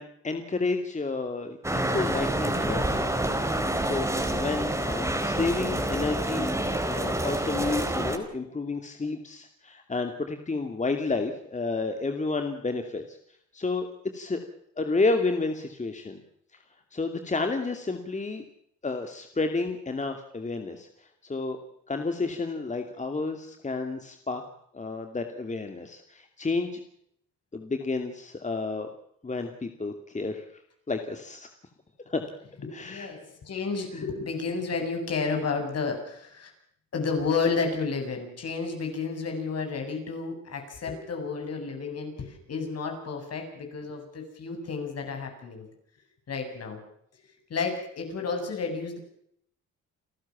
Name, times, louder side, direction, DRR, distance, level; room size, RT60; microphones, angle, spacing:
voice 1, 0.0-3.2 3.8-4.1 4.3-6.6 6.8-13.2 13.5-13.9 14.1-14.5 14.8-16.2 16.9-18.4 18.8-21.6 21.9-24.4 24.7-26.8 27.5-28.9 29.2-30.4 30.9-31.5 32.1-32.2 32.7-33.1, left 3 dB, 25° left, 5 dB, 2.5 m, -31 dB
sound 1, 1.6-8.2, right 1 dB, 10° right, 4.2 m, -28 dB
voice 2, 32.8-36.5 36.9-45.7 46.3-46.8 47.5-49.0, left 4 dB, 55° left, 4 dB, 7.8 m, -31 dB
29.0 x 13.5 x 7.3 m, 0.70 s
cardioid pair, 90°, 30 cm